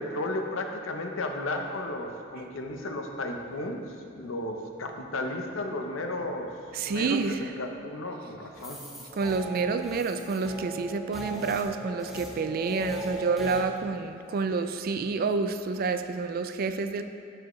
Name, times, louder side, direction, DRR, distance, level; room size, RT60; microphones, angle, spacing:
voice 1, 0.0-3.8 4.2-6.5 6.9-8.8, left 2 dB, 85° left, 4 dB, 0.7 m, -34 dB
voice 2, 6.7-7.5 9.1-17.0, right 4 dB, 50° right, 9 dB, 0.3 m, -29 dB
sound 1, 8.6-13.6, right 1 dB, ahead, 0.8 m, -38 dB
12.0 x 4.7 x 3.1 m, 2.4 s
head